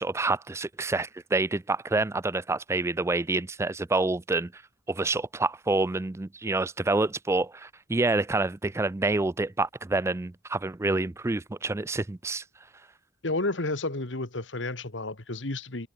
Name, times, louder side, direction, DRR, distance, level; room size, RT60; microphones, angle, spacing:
voice 1, 0.0-4.6 4.9-12.4, right 2 dB, 15° right, 0.4 m, -27 dB
voice 2, 13.2-15.9, left 2 dB, 70° left, 2.0 m, -31 dB
head